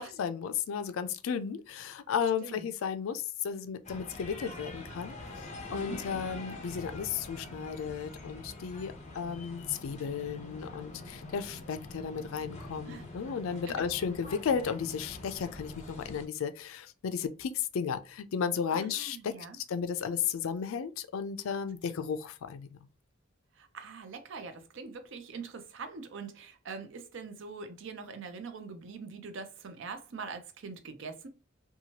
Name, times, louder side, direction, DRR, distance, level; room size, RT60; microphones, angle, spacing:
voice 1, 0.0-5.1 5.7-22.8, left 7 dB, 75° left, 0.3 m, -34 dB
sound 1, 3.8-16.3, left 2 dB, 35° left, 0.6 m, -45 dB
voice 2, 5.7-6.0 12.9-13.1 13.7-13.8 18.7-19.6 23.6-31.3, right 4 dB, 60° right, 0.5 m, -43 dB
2.9 x 2.2 x 2.8 m
head